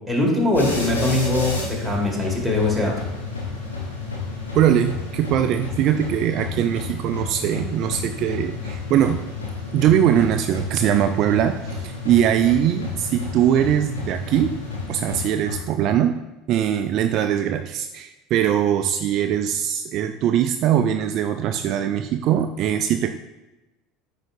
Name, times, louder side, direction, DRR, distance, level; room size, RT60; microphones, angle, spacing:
voice 1, 0.1-2.9, left 2 dB, ahead, -3 dB, 2.1 m, -22 dB
sound 1, 0.5-15.9, left 4 dB, 85° left, 1.3 m, -31 dB
voice 2, 4.5-9.2 9.7-14.6 14.9-16.2 16.5-23.1, right 10 dB, 50° right, 7 dB, 0.3 m, -21 dB
9.0 x 4.8 x 2.7 m, 1.0 s
figure-of-eight pair, 70°, 0 cm